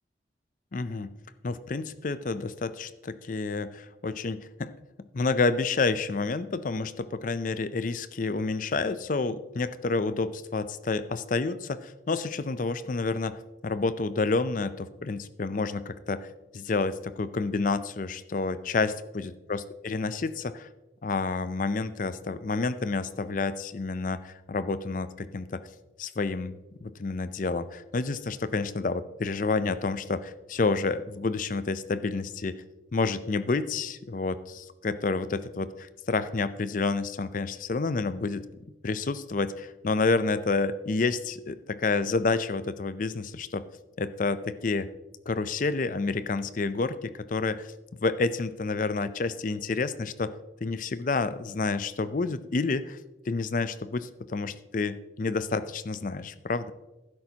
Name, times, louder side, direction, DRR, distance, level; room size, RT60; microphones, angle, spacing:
voice 1, 0.7-1.1 1.4-4.7 5.1-16.3 16.5-20.7 21.0-25.6 26.0-32.5 32.9-38.4 38.8-43.6 44.0-44.9 45.3-47.7 48.0-50.3 50.6-53.0 53.3-56.7, left 3 dB, 45° left, 14 dB, 0.5 m, -29 dB
12.0 x 10.5 x 2.9 m, 1.0 s
head